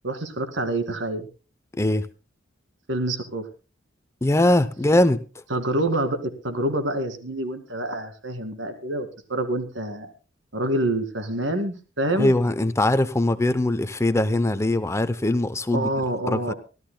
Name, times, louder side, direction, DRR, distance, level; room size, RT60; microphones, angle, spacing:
voice 1, 0.0-1.3 2.9-3.4 5.5-10.1 10.5-12.3 15.7-16.5, right 1 dB, 80° right, 8 dB, 2.2 m, -27 dB
voice 2, 4.2-5.4 12.2-15.9 16.3-16.5, left 1 dB, 15° left, 13 dB, 0.6 m, -21 dB
25.0 x 13.5 x 2.2 m, 0.32 s
head